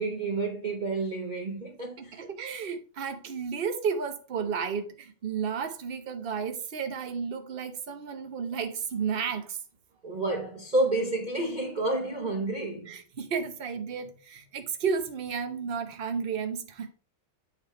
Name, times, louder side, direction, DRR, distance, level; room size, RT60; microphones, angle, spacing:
voice 1, 0.0-2.3 10.0-12.9, right 2 dB, 90° right, 0.4 m, -30 dB
voice 2, 2.0-9.6 12.9-16.9, right 6 dB, 50° right, 0.7 m, -32 dB
8.7 x 3.5 x 4.4 m
omnidirectional pair, 2.2 m